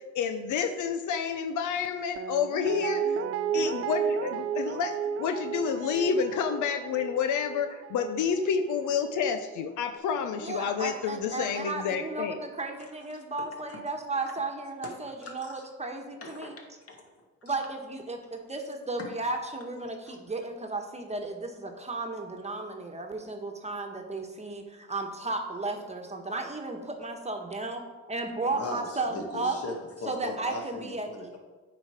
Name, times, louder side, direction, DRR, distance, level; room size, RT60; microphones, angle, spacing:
voice 1, 0.0-3.2 3.5-12.4, left 6 dB, 80° left, 8 dB, 0.6 m, -29 dB
Guitar, 2.2-9.2 9.5-9.6, right 7 dB, 50° right, 0.5 m, -33 dB
voice 2, 10.3-16.5 17.4-27.8 28.1-29.6 30.0-31.4, right 3 dB, 20° right, 3 dB, 1.2 m, -34 dB
voice 3, 15.2-15.7 16.2-17.5 19.0-19.1 20.1-20.2 28.5-31.4, left 2 dB, 50° left, 1 dB, 1.9 m, -39 dB
8.8 x 5.0 x 4.9 m, 1.3 s
cardioid pair, 90°, 30 cm